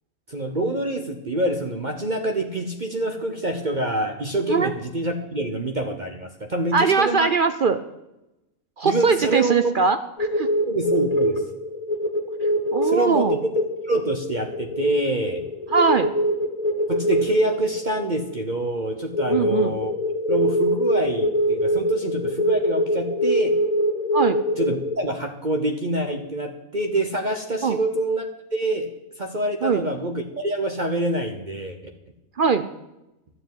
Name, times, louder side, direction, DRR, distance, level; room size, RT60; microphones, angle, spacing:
voice 1, 0.3-7.3 8.8-9.8 10.7-11.4 12.8-13.4 13.6-15.5 16.9-19.9 20.3-23.6 24.6-31.8, right 1 dB, 35° right, 4 dB, 1.0 m, -26 dB
voice 2, 6.7-7.8 8.8-10.5 12.7-13.4 15.7-16.1 19.3-19.8 24.1-24.4 27.6-27.8 29.6-29.8 32.4-32.7, right 5 dB, 60° right, 10 dB, 0.5 m, -21 dB
sound 1, 10.2-18.5 19.1-25.0, equal, 30° left, 1.0 m, -24 dB
12.0 x 7.3 x 9.3 m, 0.92 s
omnidirectional pair, 1.5 m